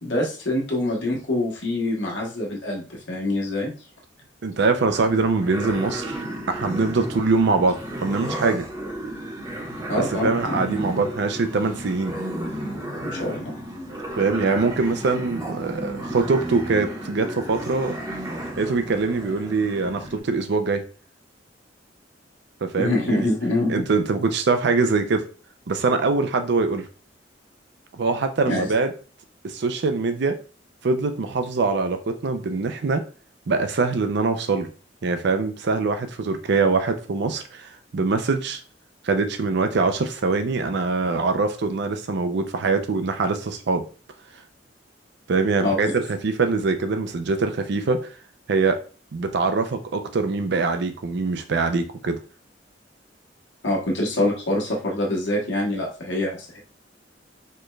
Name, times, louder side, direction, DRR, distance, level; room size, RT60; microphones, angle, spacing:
voice 1, 0.0-3.7 9.9-10.6 13.0-13.5 22.8-23.8 28.5-28.7 45.6-45.8 53.6-56.6, left 1 dB, 80° left, 1.2 m, -25 dB
voice 2, 4.4-6.2 6.5-8.7 10.0-12.1 14.2-18.0 18.6-20.8 22.6-23.3 23.7-25.3 25.7-26.9 27.9-28.9 29.4-30.4 30.8-33.0 33.5-34.7 35.0-38.6 39.0-43.8 45.3-48.1 48.5-48.8 49.1-52.2, right 4 dB, 65° right, 0.5 m, -23 dB
sound 1, 4.9-20.2, right 1 dB, 20° right, 0.9 m, -33 dB
4.4 x 2.3 x 3.1 m
head